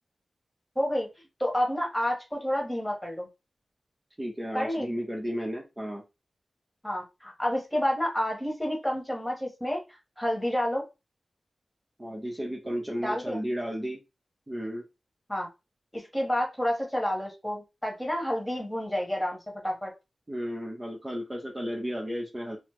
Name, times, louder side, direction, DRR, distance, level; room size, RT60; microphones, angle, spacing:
voice 1, 0.7-1.1 1.4-3.3 4.5-4.9 6.8-10.8 13.0-13.4 15.3-15.5 15.9-19.9, equal, 10° left, 0 dB, 1.4 m, -29 dB
voice 2, 4.2-6.0 12.0-14.0 14.5-14.8 20.3-22.6, equal, 20° right, -2 dB, 0.8 m, -33 dB
3.2 x 2.0 x 3.1 m, 0.25 s
cardioid pair, 55°, 0 cm